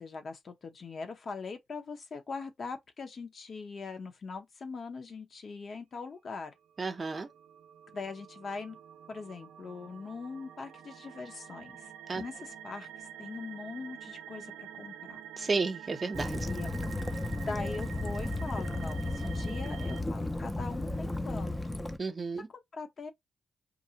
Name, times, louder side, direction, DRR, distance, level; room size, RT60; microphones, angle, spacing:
voice 1, 0.0-6.5 7.9-8.8 9.1-15.2 16.4-16.7 17.0-21.7 22.5-23.1, left 4 dB, 55° left, 0.7 m, -42 dB
voice 2, 6.8-7.3 12.1-12.2 15.4-16.5 22.0-22.5, right 4 dB, 40° right, 0.6 m, -32 dB
sound 1, 6.8-20.0, right 10 dB, 85° right, 0.4 m, -48 dB
Waves surf / Splash splatter / Trickle dribble, 16.1-22.0, left 2 dB, 10° left, 0.4 m, -34 dB
2.5 x 2.0 x 2.7 m
cardioid pair, 80°, 0 cm